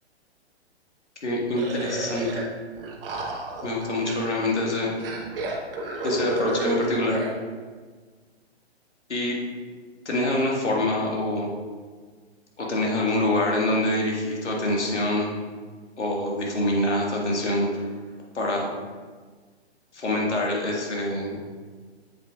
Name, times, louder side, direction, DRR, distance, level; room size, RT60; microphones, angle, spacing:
voice 1, 1.2-2.5 3.6-4.9 6.0-7.2 9.1-9.4 10.1-11.5 12.6-15.3 16.0-17.8 18.3-18.7 19.9-21.4, left 1 dB, 90° left, -2 dB, 1.9 m, -25 dB
sound 1, 1.5-2.4 2.7-4.5 5.0-7.4, right 2 dB, 55° right, 1.3 m, -31 dB
7.8 x 7.4 x 2.4 m, 1.5 s
hypercardioid pair, 135°, 34 cm